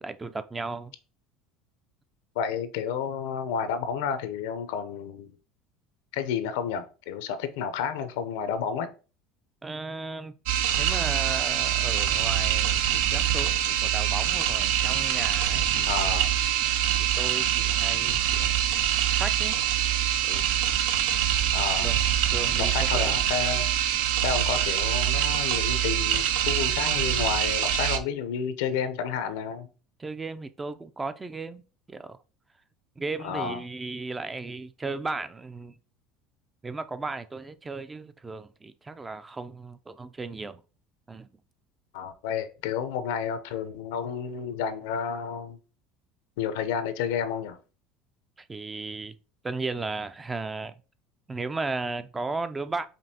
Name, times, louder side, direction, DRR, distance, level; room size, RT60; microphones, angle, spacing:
voice 1, 0.0-0.9 9.6-10.3 10.8-16.0 17.1-18.6 19.1-19.6 20.2-20.4 21.8-23.2 30.0-31.6 31.9-32.2 33.0-35.7 36.6-40.6 41.1-41.3 48.4-49.1 49.4-50.8 51.3-52.8, right 3 dB, 15° right, 0.3 m, -35 dB
voice 2, 2.4-5.4 6.1-8.9 15.9-16.3 21.5-21.9 22.6-23.7 24.2-29.7 33.2-33.6 41.9-45.6 46.4-47.6, left 7 dB, 85° left, 0.5 m, -31 dB
sound 1, 10.5-28.0, right 10 dB, 80° right, 0.5 m, -25 dB
5.1 x 2.7 x 2.8 m
supercardioid pair, 120°, 0 cm